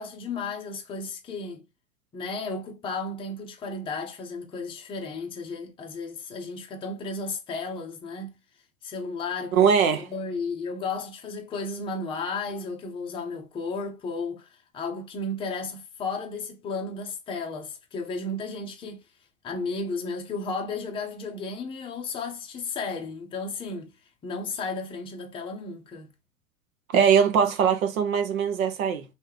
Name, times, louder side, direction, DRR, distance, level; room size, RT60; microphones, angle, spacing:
voice 1, 0.0-1.6 2.1-8.4 8.8-9.6 9.9-14.5 14.7-19.0 19.4-23.9 24.2-26.1, left 3 dB, 10° left, 0.6 m, -33 dB
voice 2, 9.5-10.1 26.9-29.0, right 7 dB, 65° right, 0.9 m, -21 dB
3.2 x 2.8 x 3.2 m
hypercardioid pair, 100°, 44 cm